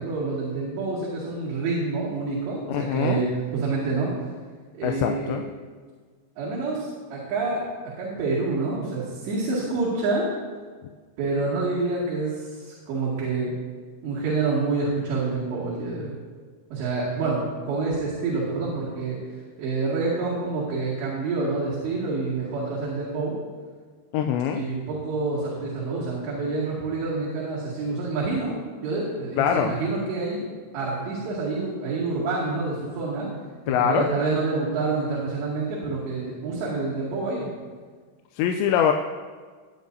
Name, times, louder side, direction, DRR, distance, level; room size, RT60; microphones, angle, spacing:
voice 1, 0.0-4.3 4.7-5.4 6.4-10.3 11.2-13.5 14.0-16.2 16.7-19.2 19.6-23.3 24.5-28.5 28.8-30.5 30.7-33.3 33.8-37.5, right 3 dB, 80° right, -8 dB, 4.5 m, -27 dB
voice 2, 2.7-3.2 4.8-5.4 24.1-24.6 29.4-29.7 33.7-34.1 38.4-38.9, left 9 dB, 90° left, 4 dB, 2.9 m, -23 dB
19.0 x 10.5 x 2.7 m, 1.5 s
omnidirectional pair, 5.0 m